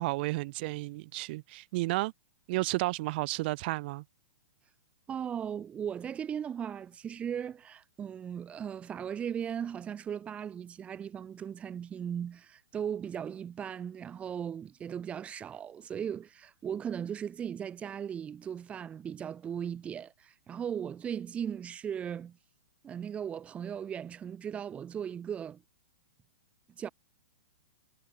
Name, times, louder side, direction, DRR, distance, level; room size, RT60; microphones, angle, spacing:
voice 1, 0.0-2.1 2.5-4.0, right 21 dB, 40° right, 2.1 m, -32 dB
voice 2, 5.1-22.4 22.8-25.6 26.8-26.9, right 8 dB, 15° right, 1.9 m, -37 dB
hypercardioid pair, 150°, 8 cm